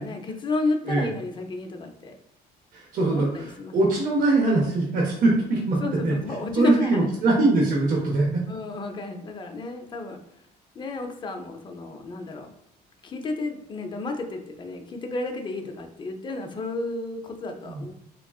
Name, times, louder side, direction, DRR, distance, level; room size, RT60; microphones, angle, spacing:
voice 1, 0.0-2.1 3.0-3.8 5.8-7.1 8.5-10.2 10.8-12.5 13.0-17.9, left 3 dB, 30° left, 4 dB, 0.5 m, -31 dB
voice 2, 2.7-6.1 6.5-8.4 17.7-17.8, right 2 dB, 55° right, -2 dB, 0.7 m, -22 dB
3.6 x 2.3 x 2.3 m, 0.79 s
cardioid pair, 110°, 17 cm